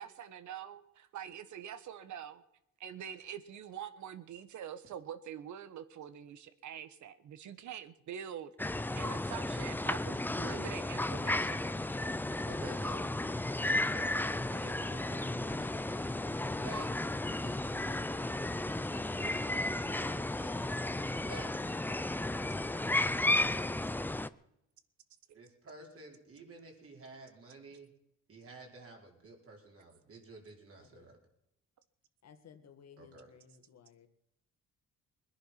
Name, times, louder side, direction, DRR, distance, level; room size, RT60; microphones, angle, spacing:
voice 1, 0.0-2.4 2.8-11.8 25.3-25.4, right 9 dB, 70° right, 13 dB, 1.3 m, -45 dB
sound 1, 8.6-24.3, left 2 dB, 5° left, 0.5 m, -34 dB
voice 2, 12.4-13.1 13.6-14.1 14.5-16.2 16.6-16.9 19.1-20.7 21.3-21.6 25.3-27.9 28.3-31.2 33.0-33.3, right 2 dB, 50° right, 0 dB, 5.1 m, -51 dB
voice 3, 30.8-31.2 32.2-34.1, left 7 dB, 60° left, 8 dB, 2.0 m, -58 dB
21.5 x 10.5 x 5.9 m, 0.83 s
cardioid pair, 90°, 30 cm